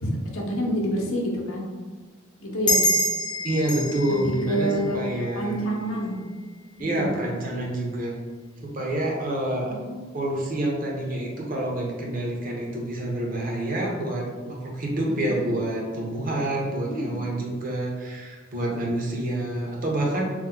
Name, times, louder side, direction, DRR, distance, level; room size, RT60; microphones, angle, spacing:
voice 1, 0.0-1.7 2.4-2.8 4.1-5.0 5.3-6.2 6.8-7.1 9.7-10.0 15.1-15.4 16.9-17.3, right 1 dB, 85° left, -1 dB, 0.7 m, -28 dB
sound 1, 2.7-5.8, equal, 20° left, 0.4 m, -27 dB
voice 2, 3.4-5.5 6.8-8.2 8.6-9.7 10.1-20.2, right 1 dB, 45° right, -2 dB, 0.7 m, -27 dB
3.0 x 2.1 x 3.6 m, 1.4 s
head